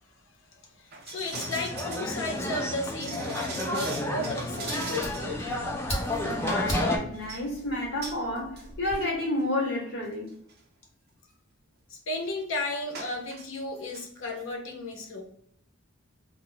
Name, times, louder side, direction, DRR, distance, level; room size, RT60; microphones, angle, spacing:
voice 1, 0.8-5.8 12.1-15.2, left 2 dB, 70° left, 0.7 m, -34 dB
sound 1, 0.9-5.4 5.6-5.7 6.0-6.7 7.1-7.4 8.0-8.2 8.6-8.7 8.9-9.1 9.8-9.9 10.3-10.5 12.9-13.5 13.8-14.0 14.4-14.5, right 4 dB, 50° right, 0.6 m, -40 dB
sound 2, 1.3-7.0, left 1 dB, 10° left, 0.3 m, -31 dB
Fire, 4.6-9.0, equal, 30° left, 1.2 m, -39 dB
voice 2, 6.2-10.3, left 1 dB, 55° left, 1.2 m, -30 dB
2.3 x 2.0 x 3.8 m
head